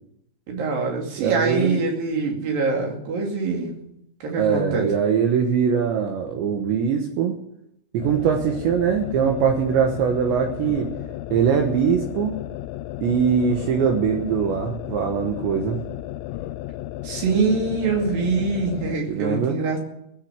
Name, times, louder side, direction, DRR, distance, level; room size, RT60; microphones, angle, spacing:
voice 1, 0.5-3.7 4.2-4.9 17.0-19.8, right 4 dB, 50° right, 1 dB, 3.7 m, -24 dB
voice 2, 1.2-1.8 4.4-7.3 7.9-10.9 11.3-12.4 13.0-15.8 19.1-19.6, right 7 dB, 70° right, 3 dB, 3.1 m, -22 dB
sound 1, 8.0-19.1, left 14 dB, 85° left, 3.2 m, -34 dB
19.5 x 7.5 x 7.4 m, 0.77 s
omnidirectional pair, 5.9 m